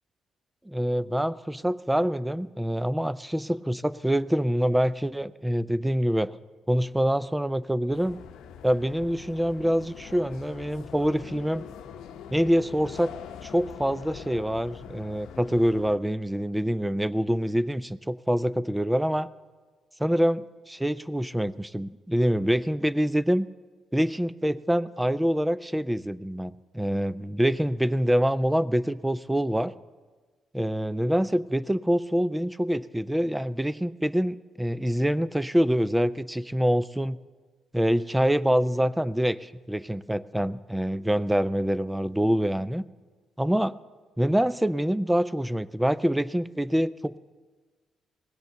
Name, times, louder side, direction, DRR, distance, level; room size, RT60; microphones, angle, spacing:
voice 1, 0.7-6.3 6.7-8.2 8.6-11.6 12.3-13.1 13.4-19.3 20.0-23.5 23.9-29.7 30.5-37.2 37.7-42.8 43.4-43.8 44.2-47.2, equal, 5° right, 18 dB, 0.4 m, -25 dB
sound 1, 7.9-16.0, left 8 dB, 85° left, 0.7 m, -43 dB
17.5 x 8.0 x 6.8 m, 1.4 s
cardioid pair, 90°, 0 cm